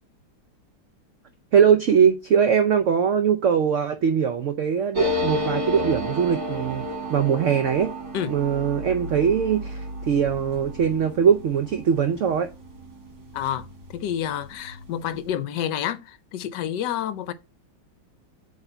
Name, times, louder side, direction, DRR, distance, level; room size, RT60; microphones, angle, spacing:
voice 1, 1.5-7.9 8.3-9.8 10.1-12.5, right 7 dB, 85° right, 0.6 m, -21 dB
sound 1, 4.9-14.1 14.4-14.5 14.7-15.3, left 1 dB, 50° right, 2.4 m, -32 dB
voice 2, 13.3-13.7 13.9-17.3, left 10 dB, 75° left, 1.2 m, -29 dB
7.9 x 3.5 x 4.4 m
omnidirectional pair, 2.1 m